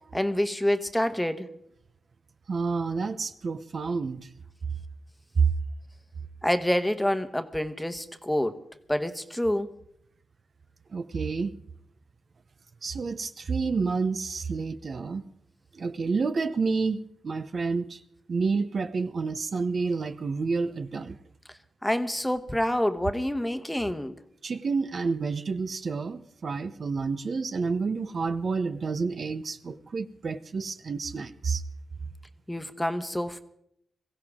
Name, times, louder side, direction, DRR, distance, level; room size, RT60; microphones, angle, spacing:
voice 1, 0.1-1.5 6.4-8.6 8.9-9.7 21.8-24.2 32.5-33.4, left 1 dB, 10° left, 1.1 m, -27 dB
voice 2, 2.5-4.3 5.4-5.5 10.9-11.5 12.8-15.2 15.7-18.0 18.3-21.2 24.4-31.6, right 4 dB, 55° right, 0.8 m, -29 dB
22.0 x 15.5 x 3.7 m
cardioid pair, 60°, 0 cm